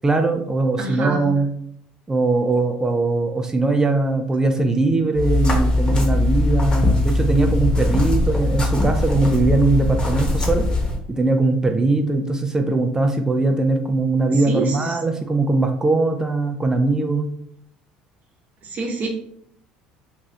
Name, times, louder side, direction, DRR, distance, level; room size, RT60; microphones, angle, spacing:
voice 1, 0.0-1.5 2.1-10.7 11.1-17.3, right 3 dB, 15° right, 5 dB, 0.4 m, -20 dB
voice 2, 0.8-1.3 14.5-14.9 18.7-19.1, right 3 dB, 45° right, 1 dB, 0.9 m, -26 dB
sound 1, 5.1-11.0, left 2 dB, 25° left, 1.0 m, -20 dB
2.5 x 2.4 x 3.2 m, 0.70 s
hypercardioid pair, 65°, 4 cm